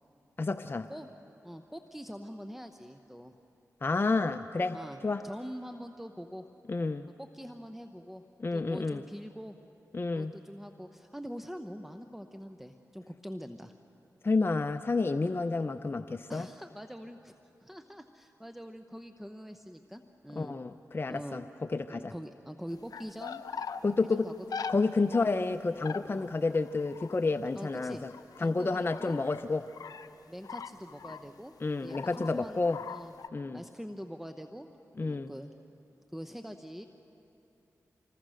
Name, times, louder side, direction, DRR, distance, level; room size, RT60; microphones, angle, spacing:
voice 1, 0.4-0.9 3.8-4.8 5.0-5.2 6.7-7.1 8.4-9.0 9.9-10.3 14.2-16.5 20.3-21.4 21.7-22.1 23.8-24.3 24.7-28.1 28.4-29.6 31.6-32.8 33.3-33.6 35.0-35.3, left 3 dB, 35° left, 9 dB, 0.6 m, -30 dB
voice 2, 1.4-3.3 4.7-5.0 5.2-6.5 7.2-8.2 8.5-9.6 10.1-13.7 16.3-17.3 17.6-20.6 21.1-21.4 21.9-23.4 24.1-24.3 26.1-26.3 27.5-28.0 28.4-29.2 30.3-31.5 31.8-33.1 33.5-34.7 35.0-35.5 36.1-36.9, equal, 5° right, 7 dB, 0.9 m, -44 dB
sound 1, 22.7-23.8 24.5-24.8 25.1-25.3 25.8-29.4 29.7-30.1 30.4-31.4 31.9-32.3 32.6-33.3, left 6 dB, 80° left, 0.6 m, -41 dB
26.5 x 21.0 x 6.4 m, 2.9 s
cardioid pair, 45°, 6 cm